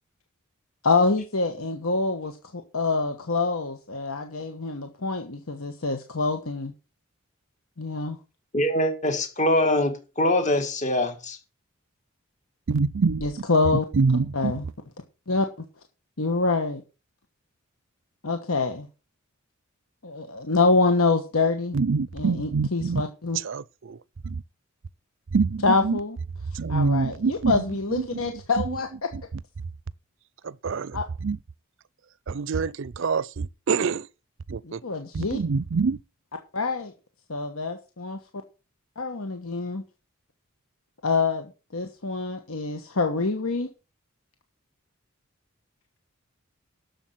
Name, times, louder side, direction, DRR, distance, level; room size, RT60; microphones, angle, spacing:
voice 1, 0.8-6.7 7.8-8.2 13.2-13.8 14.3-14.6 15.3-15.5 16.2-16.8 18.2-18.9 20.0-21.8 22.1-23.4 25.6-26.2 26.7-28.9 30.9-31.0 34.6-35.4 36.5-36.9 37.3-38.4 39.0-39.8 41.0-43.7, left 3 dB, 80° left, 1.3 m, -26 dB
voice 2, 8.5-11.4, left 1 dB, 35° left, 2.0 m, -23 dB
voice 3, 12.7-13.3 13.9-14.5 21.7-23.0 23.3-24.0 24.2-24.4 25.3-26.0 26.5-27.6 28.0-28.3 28.7-28.8 29.1-29.2 30.4-31.4 32.3-34.1 34.5-34.8 35.1-36.0, right 4 dB, 60° right, 0.5 m, -26 dB
11.5 x 7.0 x 6.0 m
head